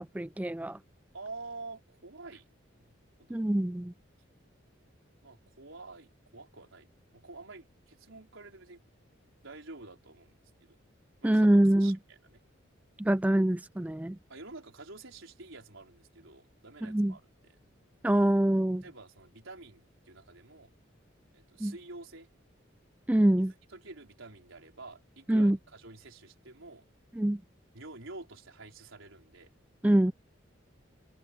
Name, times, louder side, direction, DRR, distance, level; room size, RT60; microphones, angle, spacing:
voice 1, 0.1-0.8 3.3-3.9 11.2-12.0 13.0-14.2 16.8-17.1 18.0-18.8 21.6-21.7 23.1-23.5 25.3-25.6 27.2-27.4 29.8-30.1, right 1 dB, 10° right, 0.3 m, -25 dB
voice 2, 1.1-2.5 2.8-3.4 5.2-6.9 7.1-8.8 9.4-10.3 10.6-10.8 11.2-12.4 14.3-17.6 18.8-20.7 21.3-22.3 23.7-26.8 27.7-29.5, right 3 dB, 85° right, 4.3 m, -48 dB
head